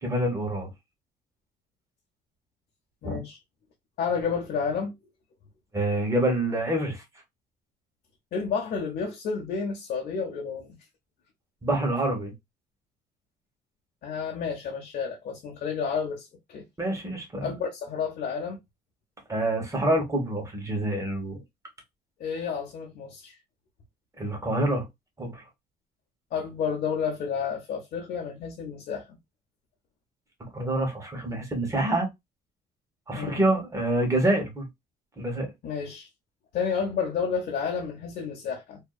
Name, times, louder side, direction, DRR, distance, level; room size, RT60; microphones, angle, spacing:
voice 1, 0.0-0.7 3.0-3.2 5.7-7.0 11.6-12.3 16.8-17.5 19.3-21.4 24.2-24.9 25.2-25.4 30.5-32.1 33.1-34.7 35.2-35.5, right 1 dB, 20° right, 1.2 m, -26 dB
voice 2, 3.0-3.4 4.0-4.9 8.3-10.8 14.0-16.7 17.4-18.6 22.2-23.3 26.3-29.2 33.1-33.4 35.6-36.1 36.5-38.8, left 6 dB, 60° left, 0.7 m, -31 dB
2.6 x 2.2 x 2.2 m
cardioid pair, 110°, 17 cm